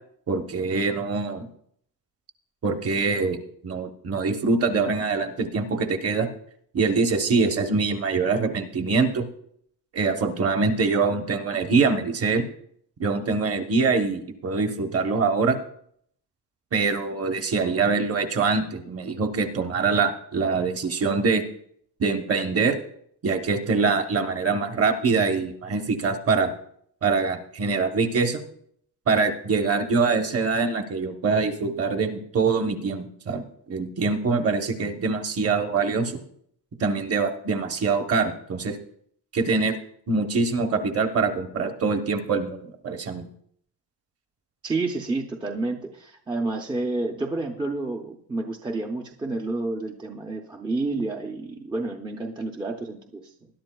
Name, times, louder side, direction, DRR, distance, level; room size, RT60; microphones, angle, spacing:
voice 1, 0.3-1.5 2.6-3.4 3.6-6.3 6.7-9.3 9.9-12.4 13.0-15.6 16.7-21.4 22.0-22.8 23.2-26.5 27.0-28.4 29.1-36.2 36.8-38.8 39.3-39.8 40.1-43.3, right 4 dB, 35° right, 6 dB, 0.9 m, -24 dB
voice 2, 44.6-53.3, right 2 dB, 10° right, 1 dB, 0.5 m, -30 dB
20.0 x 11.0 x 2.2 m, 0.66 s
cardioid pair, 180°, 43 cm